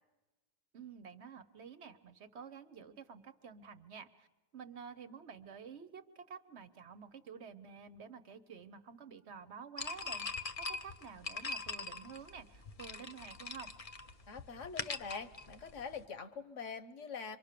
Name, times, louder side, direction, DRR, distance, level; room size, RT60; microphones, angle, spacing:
voice 1, 0.7-4.3 4.5-13.7, right 6 dB, 60° right, 11 dB, 1.2 m, -50 dB
sound 1, 9.8-16.0, left 4 dB, 35° left, 0.8 m, -42 dB
voice 2, 14.3-17.4, left 5 dB, 75° left, 11 dB, 1.3 m, -44 dB
26.5 x 24.0 x 6.8 m, 1.1 s
omnidirectional pair, 1.3 m